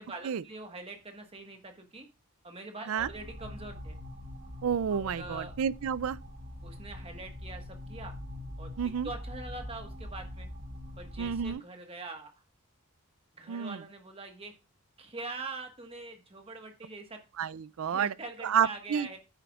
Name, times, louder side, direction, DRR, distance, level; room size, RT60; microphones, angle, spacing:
voice 1, 0.0-2.1 2.4-4.0 4.9-5.5 6.6-8.1 8.6-8.7 9.0-10.5 11.0-12.3 13.4-14.5 15.0-17.2 17.9-19.2, right 3 dB, 25° right, 1.4 m, -43 dB
sound 1, 3.0-11.5, left 1 dB, 45° right, 5.0 m, -43 dB
voice 2, 4.6-6.2 8.8-9.1 11.2-11.6 13.5-13.8 17.4-18.1 18.4-19.1, right 7 dB, 70° right, 0.4 m, -30 dB
10.0 x 9.0 x 2.4 m
head